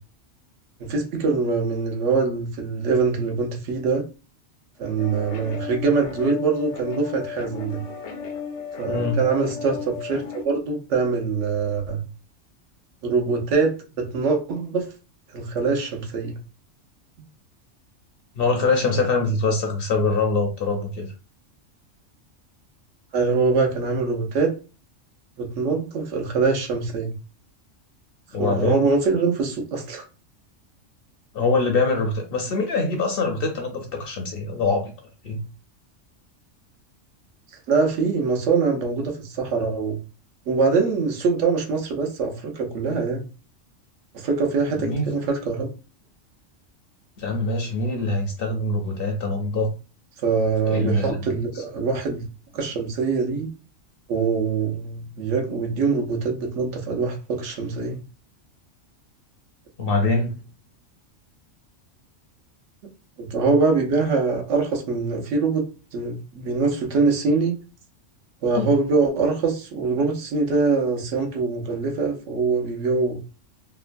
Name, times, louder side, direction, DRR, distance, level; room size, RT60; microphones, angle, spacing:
voice 1, 0.8-4.0 4.8-7.8 8.8-12.0 13.0-14.9 15.3-16.4 23.1-24.5 25.4-27.1 28.4-30.0 37.7-40.0 40.5-43.3 44.1-45.7 50.2-52.3 52.5-53.5 54.1-58.0 63.2-67.6 68.4-73.2, right 4 dB, 75° right, 1.0 m, -23 dB
sound 1, 5.0-10.4, left 6 dB, 85° left, 1.0 m, -34 dB
voice 2, 8.9-9.2 18.3-21.1 28.3-28.9 31.3-34.9 35.2-35.5 44.8-45.1 47.2-49.7 50.7-51.2 59.8-60.3 68.5-68.7, left 3 dB, 60° left, 0.7 m, -24 dB
2.9 x 2.2 x 2.5 m
omnidirectional pair, 1.3 m